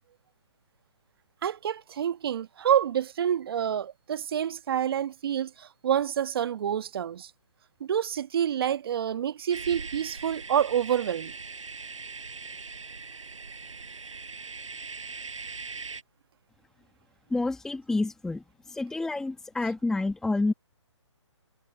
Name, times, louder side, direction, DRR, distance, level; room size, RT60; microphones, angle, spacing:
voice 1, 1.4-7.3 7.8-11.3, right 9 dB, 50° right, 1.4 m, -28 dB
sound 1, 9.5-16.0, right 4 dB, 85° right, 7.3 m, -40 dB
voice 2, 17.3-20.5, left 2 dB, 5° left, 1.4 m, -29 dB
hypercardioid pair, 150°, 16 cm